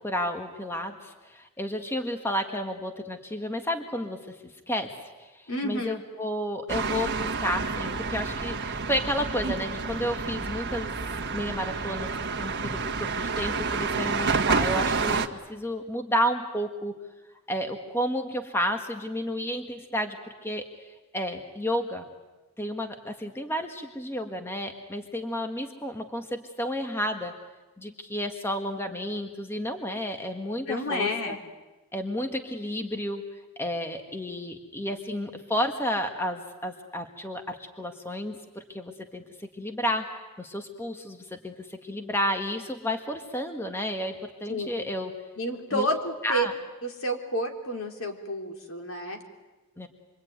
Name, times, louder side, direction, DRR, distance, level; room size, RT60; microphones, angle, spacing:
voice 1, 0.0-10.9 11.3-12.1 12.4-16.9 17.5-20.2 20.4-20.9 21.1-22.1 22.6-27.3 27.8-31.4 31.9-33.2 33.6-39.2 39.5-40.1 40.4-45.1 45.7-45.9 46.2-46.5 49.8-49.9, equal, 10° left, 5 dB, 1.6 m, -31 dB
voice 2, 5.5-6.0 30.7-31.4 44.5-44.7 45.4-46.5 46.8-49.2, equal, 70° left, 3 dB, 3.6 m, -30 dB
sound 1, 6.7-15.3, right 4 dB, 50° right, 1.6 m, -29 dB
27.0 x 23.5 x 9.4 m, 1.1 s
head